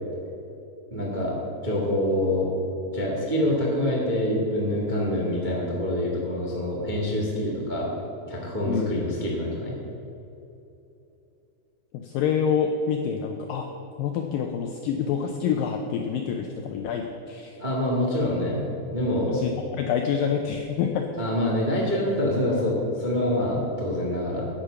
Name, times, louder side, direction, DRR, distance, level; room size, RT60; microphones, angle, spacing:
voice 1, 0.9-1.4 1.6-2.5 2.9-7.9 8.3-9.8 17.6-18.6 18.9-19.4 21.2-24.5, left 1 dB, 35° right, -4 dB, 0.7 m, -26 dB
voice 2, 11.9-13.7 14.0-17.6 19.3-21.1, left 7 dB, 90° left, 4 dB, 2.0 m, -27 dB
9.9 x 9.1 x 6.8 m, 2.9 s
omnidirectional pair, 4.9 m